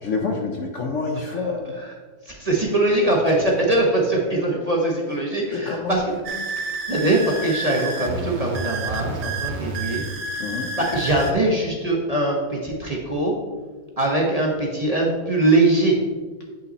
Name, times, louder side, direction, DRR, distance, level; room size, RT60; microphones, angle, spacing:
voice 1, 0.0-1.7 5.5-6.0 10.4-10.7, left 4 dB, 60° left, 2 dB, 0.9 m, -27 dB
voice 2, 1.3-1.9 2.2-6.2 6.9-10.0 10.8-13.3 14.0-16.0, right 2 dB, 25° right, -2 dB, 1.0 m, -22 dB
sound 1, 6.2-11.3, right 3 dB, 75° right, 1.4 m, -29 dB
8.6 x 5.5 x 4.1 m, 1.4 s
omnidirectional pair, 1.8 m